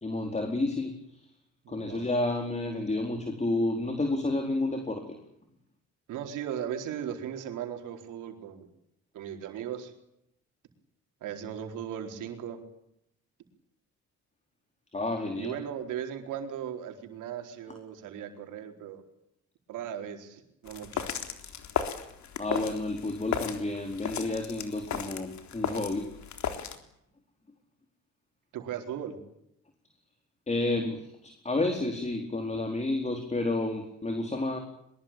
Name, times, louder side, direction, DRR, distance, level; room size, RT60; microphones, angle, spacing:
voice 1, 0.0-1.2 1.7-5.2 14.9-15.6 22.4-26.1 30.5-34.6, left 2 dB, 20° left, 5 dB, 4.4 m, -30 dB
voice 2, 1.6-2.0 6.1-8.7 9.1-9.9 11.2-12.6 15.4-19.0 19.7-21.0 28.5-29.2, right 9 dB, 90° right, 5 dB, 4.4 m, -37 dB
sound 1, 20.7-26.8, left 8 dB, 70° left, 3.8 m, -35 dB
23.0 x 22.0 x 9.0 m, 0.79 s
cardioid pair, 90°, 30 cm